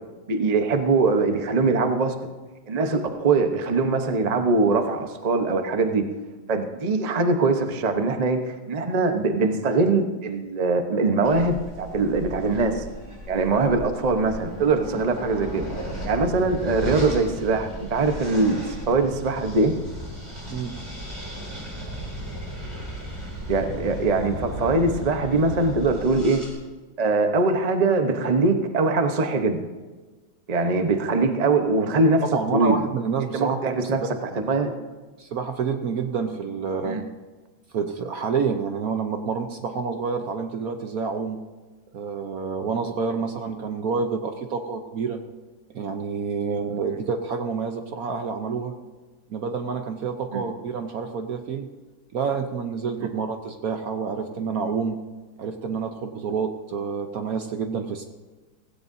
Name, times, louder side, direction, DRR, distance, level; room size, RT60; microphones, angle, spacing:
voice 1, 0.3-2.2 2.7-6.0 6.5-12.8 13.3-15.6 16.0-19.7 23.5-26.4 27.0-29.6 30.5-32.2 32.5-32.8 33.3-34.0 34.3-34.8 36.8-37.0 50.3-50.4 53.0-53.1, right 3 dB, 35° right, 6 dB, 0.6 m, -22 dB
sound 1, 11.2-26.5, equal, 15° right, 4.1 m, -35 dB
voice 2, 32.3-33.8 35.2-37.0 37.7-41.4 41.9-45.2 45.7-48.8 49.3-51.7 52.1-55.0 55.4-58.0, right 5 dB, 60° right, 6 dB, 1.0 m, -28 dB
16.5 x 16.5 x 2.7 m, 1.3 s
omnidirectional pair, 2.2 m